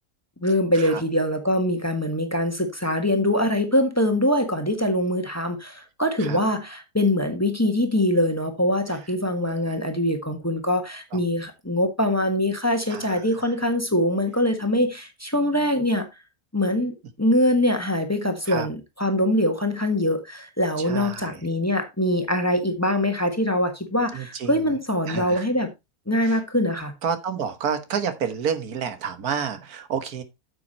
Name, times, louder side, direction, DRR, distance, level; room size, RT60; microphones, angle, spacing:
voice 1, 0.4-16.1 16.5-25.7 26.1-26.9, left 1 dB, 10° left, 1.5 m, -23 dB
voice 2, 20.9-21.3 24.1-24.5 25.1-25.5 27.0-30.2, right 7 dB, 90° right, 1.8 m, -29 dB
8.7 x 7.3 x 4.2 m
omnidirectional pair, 1.5 m